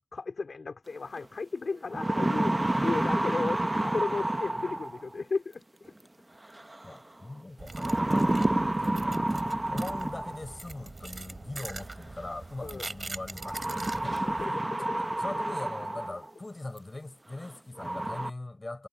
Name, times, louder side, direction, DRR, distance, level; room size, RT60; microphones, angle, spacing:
voice 1, 0.1-2.5 2.8-5.9 8.5-8.6 12.6-12.9 14.2-15.0, left 4 dB, 55° left, 4.0 m, -35 dB
sound 1, 1.2-1.3 1.7-5.1 6.5-7.0 7.7-10.5 11.8-11.9 13.4-16.3 16.8-16.9 17.4-17.5 17.8-18.3, right 1 dB, 20° right, 0.8 m, -29 dB
voice 2, 6.8-14.2 14.8-14.9 15.2-18.9, left 2 dB, 25° left, 4.5 m, -41 dB
sound 2, 7.6-14.5, right 3 dB, 35° right, 2.8 m, -43 dB
wide cardioid pair, 105°, 0 cm